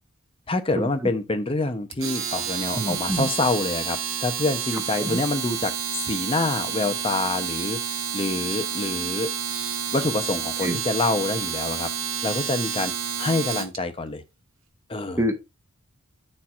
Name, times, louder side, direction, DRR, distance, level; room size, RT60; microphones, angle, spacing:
voice 1, 0.5-7.8 8.1-9.3 9.9-11.9 12.2-12.9 13.2-14.2 14.9-15.3, left 2 dB, 25° left, 0.6 m, -26 dB
Domestic sounds home sounds, 1.9-13.8, right 7 dB, 65° right, 1.0 m, -29 dB
voice 2, 2.7-3.3 5.0-5.2 10.6-10.8 15.2-15.3, equal, 10° right, 0.8 m, -26 dB
10.5 x 4.3 x 2.4 m
head